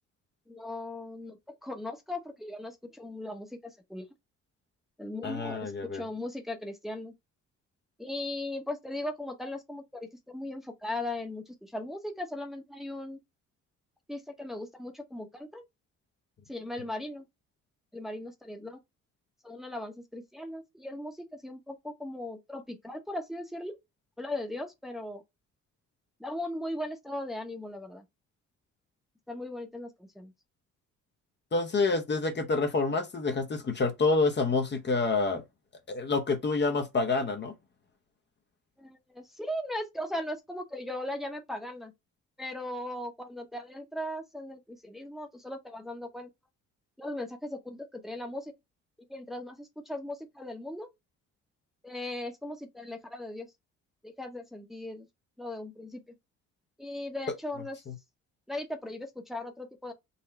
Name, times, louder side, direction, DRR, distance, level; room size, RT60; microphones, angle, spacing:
voice 1, 0.5-4.1 5.0-7.1 8.0-13.2 14.1-15.6 16.5-17.3 17.9-18.8 19.4-23.8 24.2-25.2 26.2-28.0 29.3-30.3 38.8-41.9 42.4-46.3 47.0-48.5 49.1-50.9 51.8-53.5 54.0-55.1 55.4-56.0 56.8-57.8 58.5-59.9, left 1 dB, ahead, 0.8 m, -38 dB
voice 2, 5.2-6.0 31.5-35.4 35.9-37.5 57.3-57.4, left 3 dB, 35° left, 0.8 m, -27 dB
4.0 x 2.2 x 4.0 m
cardioid pair, 90°, 30 cm